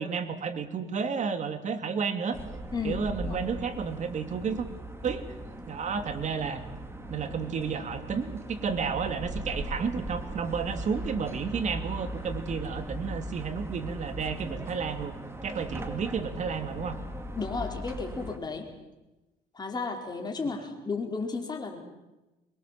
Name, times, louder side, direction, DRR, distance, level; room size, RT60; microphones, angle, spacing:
voice 1, 0.0-2.4 2.8-4.7 5.0-5.2 5.7-6.6 7.1-15.2 15.4-17.0, right 6 dB, 45° right, 8 dB, 2.7 m, -31 dB
sound 1, 2.3-18.4, right 1 dB, 15° right, 2.5 m, -39 dB
voice 2, 2.7-3.4 17.4-18.7 19.5-21.8, left 4 dB, 25° left, 2 dB, 4.6 m, -33 dB
24.5 x 22.0 x 7.5 m, 1.1 s
cardioid pair, 110°, 17 cm